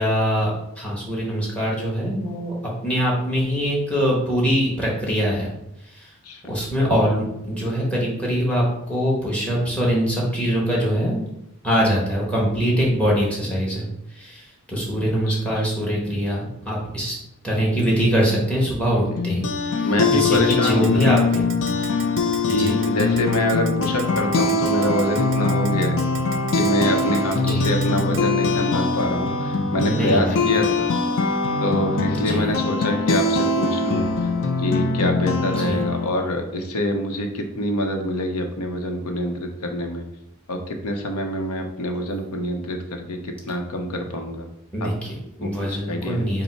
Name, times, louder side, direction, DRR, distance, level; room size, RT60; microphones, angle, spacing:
voice 1, 0.0-2.5 2.8-5.5 5.9-6.1 6.5-11.2 11.6-13.9 14.1-17.2 17.4-21.5 22.4-22.8 27.3-27.8 29.8-30.4 32.1-32.6 35.6-35.8 44.7-46.4, equal, 5° left, -4 dB, 1.2 m, -23 dB
sound 1, 19.2-36.1, left 3 dB, 55° left, 0.5 m, -22 dB
voice 2, 19.8-21.1 22.5-26.0 26.5-30.9 31.6-34.1 34.6-40.0 40.5-44.5 44.8-44.9 45.4-45.5 45.9-46.3, left 1 dB, 85° left, 4 dB, 0.7 m, -25 dB
Keyboard (musical), 20.3-28.2, right 9 dB, 55° right, 0.4 m, -37 dB
5.2 x 2.1 x 4.5 m, 0.83 s
head